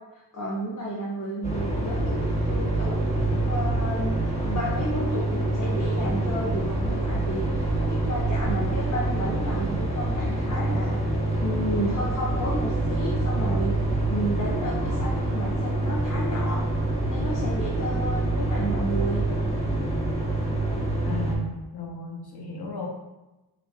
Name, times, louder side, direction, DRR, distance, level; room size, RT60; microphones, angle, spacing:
voice 1, 0.1-7.6 7.9-11.0 11.4-16.6 17.1-19.2, equal, 40° left, -5 dB, 1.0 m, -32 dB
sound 1, 1.4-21.3, right 2 dB, 15° left, 1.5 m, -26 dB
voice 2, 21.0-22.9, left 2 dB, 65° left, 0 dB, 1.0 m, -35 dB
5.1 x 4.2 x 2.3 m, 1.1 s
cardioid pair, 40°, 41 cm